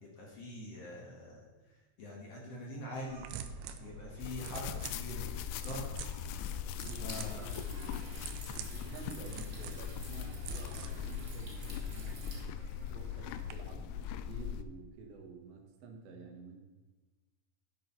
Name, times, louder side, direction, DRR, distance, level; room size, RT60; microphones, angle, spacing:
voice 1, 0.0-3.3 3.8-5.3 5.6-6.1 7.0-7.5, left 1 dB, 55° left, -2 dB, 2.0 m, -44 dB
sound 1, 3.1-13.5, right 4 dB, 85° right, 2.6 m, -47 dB
sound 2, 4.2-14.6, left 9 dB, 85° left, 2.6 m, -40 dB
voice 2, 6.7-8.1 8.5-12.5 12.9-16.6, right 4 dB, 55° right, 2 dB, 1.9 m, -51 dB
sound 3, 6.9-12.4, right 2 dB, 30° right, 2.5 m, -51 dB
10.5 x 6.5 x 5.4 m, 1.2 s
omnidirectional pair, 4.5 m